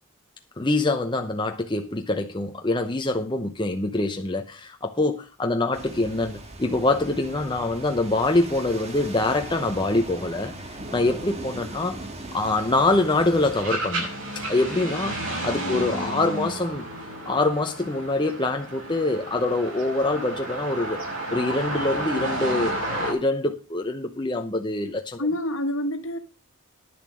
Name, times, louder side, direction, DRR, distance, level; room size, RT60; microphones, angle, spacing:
voice 1, 0.6-12.0 12.3-14.1 14.3-16.9 17.2-21.0 21.3-25.2, left 2 dB, 20° left, 0.8 m, -25 dB
sound 1, 5.7-13.6, right 2 dB, 30° right, 1.6 m, -39 dB
sound 2, 12.4-23.1, right 1 dB, 65° right, 5.9 m, -32 dB
voice 2, 15.6-16.1 25.2-26.2, left 1 dB, 65° left, 1.6 m, -28 dB
10.5 x 7.3 x 6.3 m
head